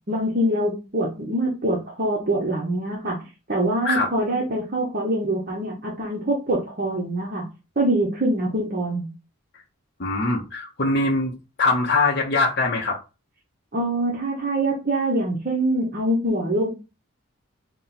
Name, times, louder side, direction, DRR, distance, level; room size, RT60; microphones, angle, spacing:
voice 1, 0.1-3.2 3.5-7.5 7.8-9.1 13.7-16.7, right 1 dB, 45° right, -2 dB, 0.9 m, -24 dB
voice 2, 10.0-13.0, left 3 dB, 50° left, -2 dB, 0.6 m, -22 dB
4.2 x 2.1 x 4.0 m, 0.30 s
head